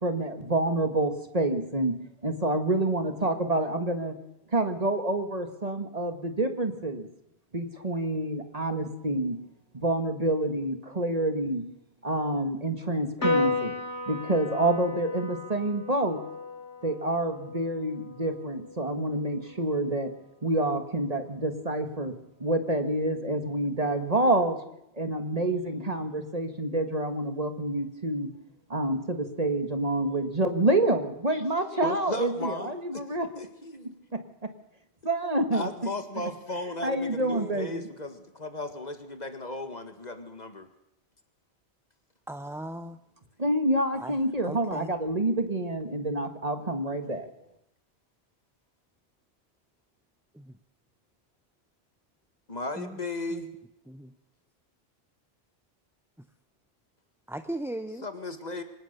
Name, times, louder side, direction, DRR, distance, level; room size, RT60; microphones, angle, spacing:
voice 1, 0.0-1.9 2.2-4.1 4.5-7.1 7.5-9.4 9.7-11.6 12.0-13.8 14.1-16.2 16.8-20.1 20.4-22.1 22.4-24.6 24.9-28.3 28.7-33.3 34.1-34.2 35.0-35.7 36.8-37.8 43.4-47.3, right 1 dB, 35° right, 7 dB, 1.9 m, -27 dB
Piano, 13.2-19.9, left 3 dB, 85° left, 3.9 m, -34 dB
voice 2, 31.8-33.0 33.4-33.9 35.5-40.7 52.5-53.5 58.0-58.6, left 2 dB, 40° left, 8 dB, 2.1 m, -35 dB
voice 3, 42.3-43.0 43.9-44.2 44.4-44.9 50.3-50.6 52.8-53.0 53.3-53.4 53.9-54.1 57.3-58.0, right 1 dB, 5° right, 9 dB, 0.6 m, -37 dB
25.0 x 18.0 x 6.8 m, 0.81 s
omnidirectional pair, 1.1 m